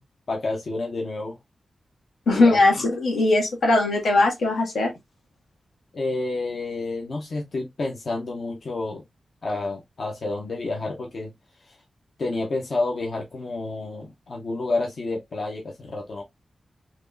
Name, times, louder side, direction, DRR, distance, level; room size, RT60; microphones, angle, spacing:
voice 1, 0.3-1.4 2.3-2.6 5.9-9.0 9.4-11.3 11.6-11.8 12.2-16.2, left 2 dB, 50° left, 0.7 m, -29 dB
voice 2, 2.3-4.9, left 2 dB, 80° left, 1.7 m, -20 dB
4.2 x 2.9 x 2.6 m
wide cardioid pair, 175°, 0 cm